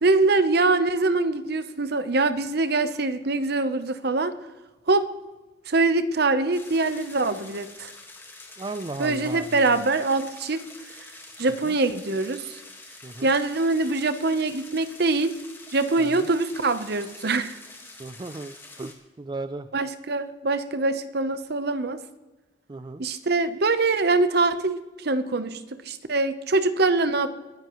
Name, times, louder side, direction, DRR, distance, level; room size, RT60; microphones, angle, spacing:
voice 1, 0.0-4.4 4.9-5.1 5.7-7.9 9.0-10.6 11.0-11.1 11.4-12.6 13.2-15.3 15.7-17.6 19.7-22.0 23.0-27.3, right 3 dB, 60° right, 11 dB, 0.9 m, -23 dB
sound 1, 6.5-18.9, left 2 dB, 10° left, 1.6 m, -46 dB
voice 2, 8.6-9.6 11.6-11.8 13.0-13.3 16.0-16.3 18.0-19.7 22.7-23.0, right 2 dB, 25° right, 11 dB, 0.4 m, -36 dB
21.0 x 10.5 x 3.1 m, 1.1 s
head